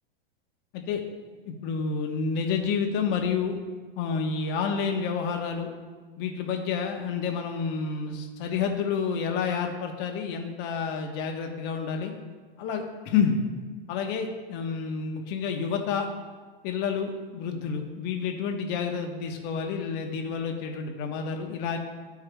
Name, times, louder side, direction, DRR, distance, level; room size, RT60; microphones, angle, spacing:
voice 1, 1.4-3.6 4.0-5.7 6.2-12.1 12.6-13.4 13.9-16.1 16.6-21.8, left 6 dB, 40° left, 3 dB, 1.0 m, -29 dB
11.5 x 4.7 x 2.3 m, 1.4 s
hypercardioid pair, 135°, 29 cm